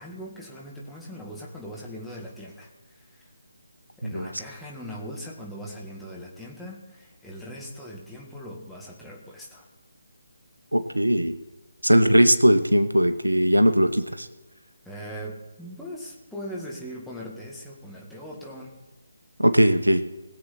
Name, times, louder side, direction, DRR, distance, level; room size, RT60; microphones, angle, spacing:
voice 1, 0.0-3.3 4.0-9.7 14.9-18.8, equal, ahead, -5 dB, 1.9 m, -40 dB
voice 2, 4.0-4.3 10.7-11.3 11.8-14.3 19.4-20.0, equal, 80° right, 11 dB, 1.0 m, -19 dB
21.5 x 7.6 x 4.4 m, 1.1 s
figure-of-eight pair, 150°, 0 cm